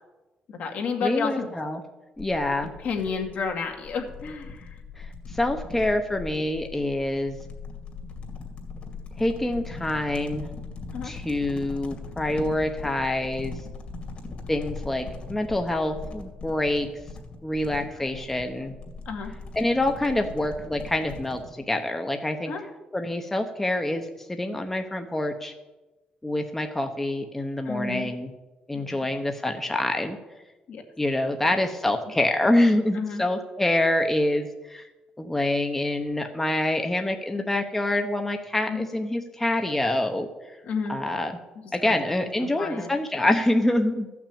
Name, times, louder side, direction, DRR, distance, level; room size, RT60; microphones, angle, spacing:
voice 1, 0.5-1.5 2.8-4.8 10.9-11.1 18.0-18.1 18.5-18.7 19.1-19.3 22.5-22.6 27.6-28.1 28.7-29.1 30.7-30.8 31.2-31.4 32.9-33.2 38.7-38.9 40.6-41.0 41.8-42.0 42.4-42.9, left 5 dB, 65° left, 3 dB, 2.1 m, -31 dB
voice 2, 1.0-1.8 2.2-2.7 5.0-7.4 9.2-10.5 11.0-13.5 14.5-16.9 17.4-18.7 19.6-22.5 22.9-25.5 26.2-28.3 28.7-30.2 31.0-34.9 35.2-40.3 40.9-41.3 41.7-44.1, left 1 dB, 10° left, 5 dB, 0.9 m, -26 dB
sound 1, 2.2-21.5, left 4 dB, 45° left, 2.3 m, -40 dB
14.0 x 6.1 x 8.7 m, 1.1 s
cardioid pair, 125°, 3 cm